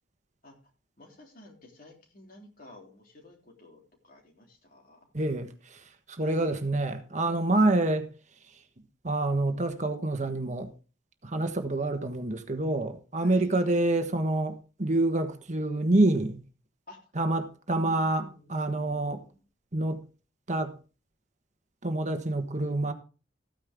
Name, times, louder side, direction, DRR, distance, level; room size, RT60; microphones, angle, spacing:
voice 1, 1.0-5.1 6.2-6.6 7.2-7.8 13.2-13.7 16.9-17.0 17.8-19.4, left 1 dB, 45° left, 3.4 m, -52 dB
voice 2, 5.1-5.8 6.1-8.1 9.0-10.7 11.2-16.4 17.2-18.2 18.5-19.2 19.7-20.0 20.5-20.7 21.8-22.9, right 2 dB, 40° right, 1.3 m, -27 dB
14.0 x 9.6 x 3.6 m
head